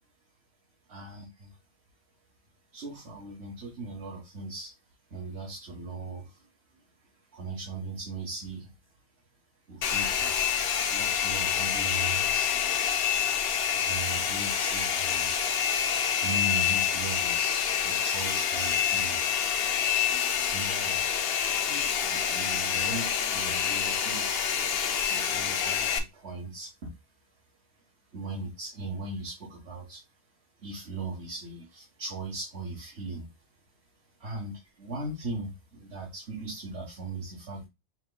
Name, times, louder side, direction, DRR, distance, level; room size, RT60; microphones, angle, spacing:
voice 1, 0.9-1.6 2.7-4.7 5.1-6.8 7.3-8.7 9.7-10.6 10.9-12.6 13.7-15.4 16.2-19.2 20.5-21.1 22.0-24.4 25.1-26.9 28.1-30.0 30.6-33.3 34.2-37.7, right 2 dB, 65° right, -2 dB, 1.5 m, -38 dB
Domestic sounds home sounds, 9.8-26.0, left 8 dB, 65° left, 0.8 m, -27 dB
6.0 x 2.9 x 2.2 m, 0.22 s
omnidirectional pair, 1.2 m